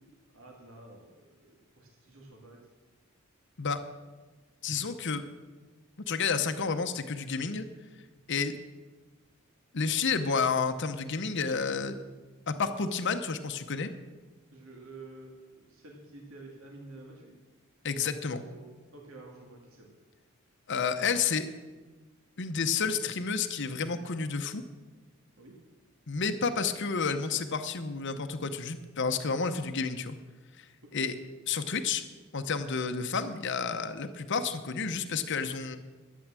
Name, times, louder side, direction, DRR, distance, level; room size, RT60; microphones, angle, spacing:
voice 1, 0.3-2.6 14.5-17.3 18.3-19.9 25.4-25.6 30.8-31.1, right 2 dB, 70° right, -1 dB, 2.2 m, -50 dB
voice 2, 4.6-5.2 6.1-7.7 8.3-8.6 9.7-11.9 12.5-13.9 17.8-18.4 20.7-21.5 22.4-24.6 26.1-30.2 30.6-30.7 30.9-31.1 31.5-32.0 32.3-35.8, left 5 dB, 55° left, 7 dB, 0.8 m, -30 dB
12.5 x 9.3 x 7.4 m, 1.3 s
head